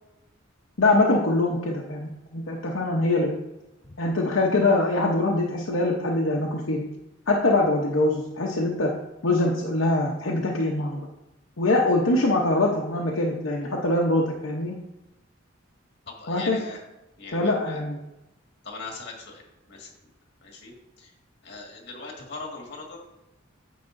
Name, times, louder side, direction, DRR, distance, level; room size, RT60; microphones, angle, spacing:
voice 1, 0.8-3.3 4.0-6.8 7.3-8.9 9.2-11.1 11.6-14.7 16.3-16.6 17.3-18.0, left 2 dB, 80° left, -2 dB, 0.9 m, -23 dB
voice 2, 16.1-16.8 17.2-17.8 18.6-19.4 19.7-19.9 20.4-21.1 21.4-23.0, left 3 dB, 60° left, -1 dB, 1.9 m, -40 dB
9.4 x 7.0 x 2.6 m, 0.96 s
head